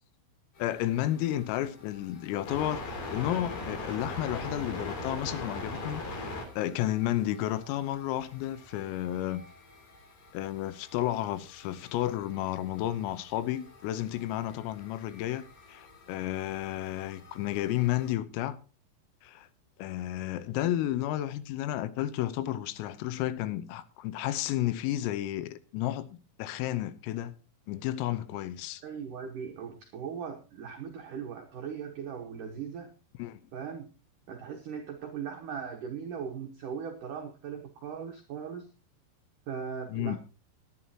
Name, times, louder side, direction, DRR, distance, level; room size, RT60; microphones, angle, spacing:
voice 1, 0.6-9.5 10.3-18.6 19.2-19.5 19.8-26.1 26.4-27.3 27.7-28.8 33.2-33.4 39.9-40.2, left 13 dB, 85° left, 3.5 m, -32 dB
sound 1, 0.6-18.1, left 2 dB, 50° left, 4.2 m, -43 dB
voice 2, 28.8-32.9 33.5-33.9 34.3-38.7 39.5-40.2, right 7 dB, 80° right, 1.8 m, -39 dB
19.0 x 11.0 x 2.9 m
omnidirectional pair, 6.0 m